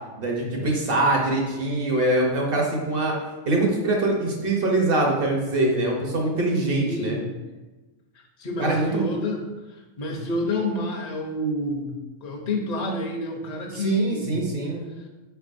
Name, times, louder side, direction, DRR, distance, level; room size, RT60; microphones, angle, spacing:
voice 1, 0.2-3.2 3.5-7.2 8.6-9.0 13.7-14.8, right 2 dB, 55° right, 0 dB, 0.9 m, -23 dB
voice 2, 6.7-7.3 8.4-11.9 12.2-14.4, left 1 dB, 40° left, 1 dB, 0.7 m, -28 dB
4.5 x 4.5 x 2.5 m, 1.2 s
omnidirectional pair, 1.2 m